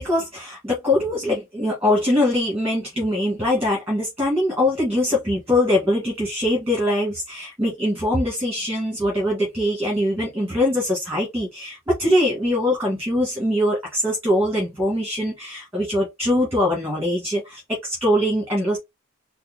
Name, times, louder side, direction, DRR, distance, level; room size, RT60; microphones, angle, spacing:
voice 1, 0.0-18.8, left 1 dB, 10° right, 1.5 m, -22 dB
4.2 x 2.1 x 3.7 m
head